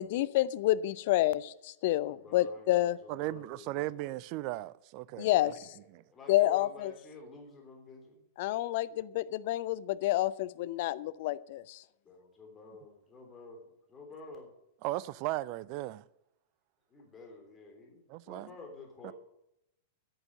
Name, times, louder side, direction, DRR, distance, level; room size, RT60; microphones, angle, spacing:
voice 1, 0.0-3.0 5.2-5.7 6.3-6.9 8.4-11.8, left 15 dB, 55° left, 0.6 m, -29 dB
voice 2, 2.1-4.0 5.4-5.7 6.1-8.2 12.1-14.5 16.9-19.1, left 3 dB, 25° left, 3.4 m, -50 dB
voice 3, 3.1-5.5 5.9-6.0 14.8-16.0 18.1-18.5 19.0-19.1, right 17 dB, 45° right, 0.5 m, -36 dB
10.5 x 9.0 x 7.6 m
figure-of-eight pair, 100°, 0 cm